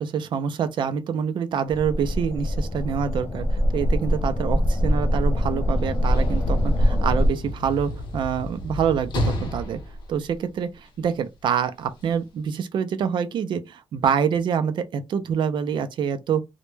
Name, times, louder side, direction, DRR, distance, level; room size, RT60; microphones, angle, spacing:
voice 1, 0.0-3.5 3.7-9.8 10.1-16.4, right 7 dB, 50° right, 0.4 m, -26 dB
sound 1, 1.7-7.3, equal, 25° left, 0.3 m, -23 dB
Sliding door / Slam, 5.7-11.1 12.0-12.1, left 1 dB, 45° left, 0.7 m, -31 dB
2.1 x 2.1 x 3.1 m
cardioid pair, 155°, 10 cm